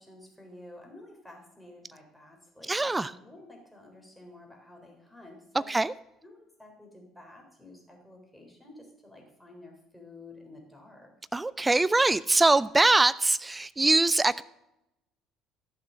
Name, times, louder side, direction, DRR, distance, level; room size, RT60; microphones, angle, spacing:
voice 1, 0.0-5.7 6.2-11.1, left 2 dB, 5° left, 1 dB, 3.6 m, -51 dB
voice 2, 2.6-3.2 5.7-5.9 11.3-14.4, right 2 dB, 15° right, 19 dB, 0.3 m, -23 dB
14.0 x 6.0 x 7.3 m, 0.88 s
figure-of-eight pair, 55°, 0 cm